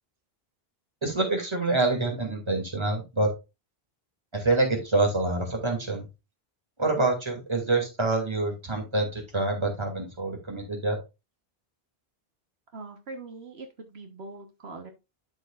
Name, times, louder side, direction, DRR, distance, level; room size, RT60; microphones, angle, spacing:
voice 1, 1.0-3.3 4.3-6.0 6.8-11.0, right 2 dB, 25° right, 1 dB, 2.4 m, -26 dB
voice 2, 12.7-14.9, right 3 dB, 80° right, 5 dB, 1.4 m, -42 dB
12.0 x 4.8 x 2.4 m, 0.26 s
omnidirectional pair, 1.1 m